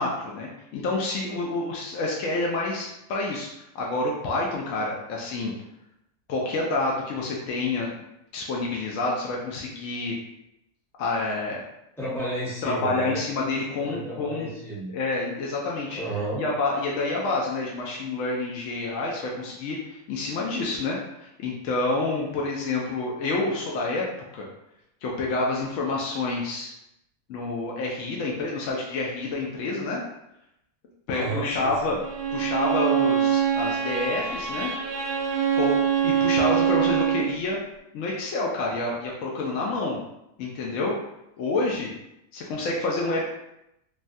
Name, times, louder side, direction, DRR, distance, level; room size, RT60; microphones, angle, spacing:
voice 1, 0.0-3.5 3.7-5.5 6.3-8.1 8.3-10.1 11.0-11.6 12.6-14.5 14.9-16.0 16.4-24.0 24.3-24.5 25.0-26.7 27.3-30.0 31.1-32.0 32.3-34.7 35.5-35.8 36.0-37.6 37.9-40.0 40.4-40.9 41.4-41.9 42.3-43.2, left 2 dB, 70° left, -2 dB, 0.8 m, -28 dB
voice 2, 12.0-13.2 13.8-14.9 15.9-16.4 31.1-32.0, right 2 dB, ahead, -8 dB, 0.6 m, -32 dB
Bowed string instrument, 32.0-37.4, right 8 dB, 65° right, 0.8 m, -24 dB
3.2 x 2.2 x 2.6 m, 0.83 s
omnidirectional pair, 1.6 m